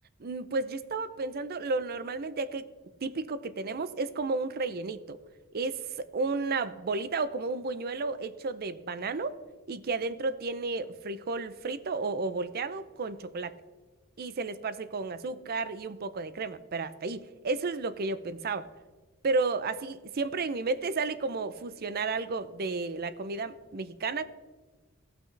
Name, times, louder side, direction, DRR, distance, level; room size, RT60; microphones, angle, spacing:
voice 1, 0.2-2.7 3.0-5.2 5.5-9.3 9.7-13.5 14.2-18.7 19.2-24.2, right 3 dB, 45° right, 14 dB, 0.5 m, -32 dB
17.5 x 5.9 x 3.3 m, 1.3 s
head